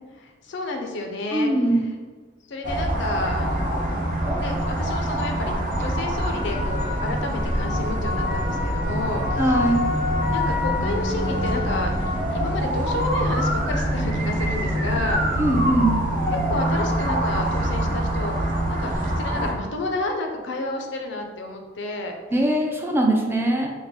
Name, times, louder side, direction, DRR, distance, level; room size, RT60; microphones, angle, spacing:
voice 1, 0.2-1.5 2.5-3.9 4.4-9.2 10.3-11.9 12.3-15.2 16.5-18.5 18.8-22.1, left 2 dB, 65° left, 3 dB, 0.5 m, -30 dB
voice 2, 1.3-1.8 9.4-9.9 15.4-16.0 22.3-23.7, right 1 dB, 10° right, 0 dB, 0.4 m, -21 dB
sound 1, 2.6-19.5, equal, 45° right, 0.7 m, -24 dB
3.3 x 2.2 x 3.5 m, 1.4 s
head